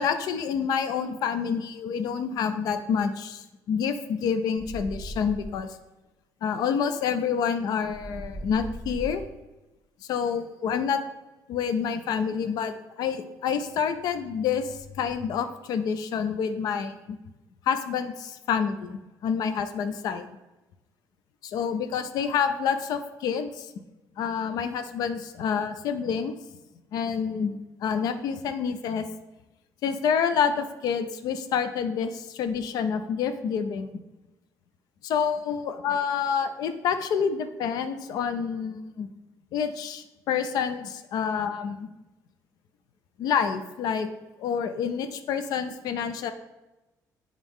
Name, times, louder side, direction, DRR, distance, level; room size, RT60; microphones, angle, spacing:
voice 1, 0.0-5.8 6.4-9.2 10.1-11.0 11.5-17.2 17.7-20.4 21.4-23.7 24.2-26.3 26.9-29.1 29.8-33.9 35.0-39.1 39.5-41.9 43.2-44.1 44.4-46.3, left 7 dB, 65° left, 9 dB, 0.5 m, -28 dB
sound 1, 4.6-5.6 7.8-9.4 13.6-15.2, equal, 40° left, 2.2 m, -40 dB
8.9 x 3.6 x 3.6 m, 1.0 s
cardioid pair, 155°, 7 cm